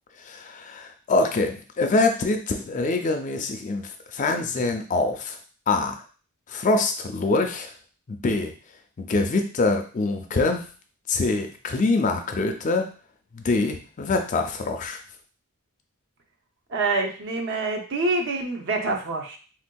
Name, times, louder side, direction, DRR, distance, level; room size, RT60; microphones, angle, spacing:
voice 1, 0.2-5.4 5.7-6.0 6.5-7.7 8.1-8.5 9.0-10.6 11.1-12.9 13.3-15.0, left 3 dB, 35° left, 5 dB, 0.3 m, -24 dB
voice 2, 16.7-19.4, right 3 dB, 55° right, 3 dB, 0.5 m, -26 dB
3.6 x 2.6 x 2.2 m, 0.38 s
head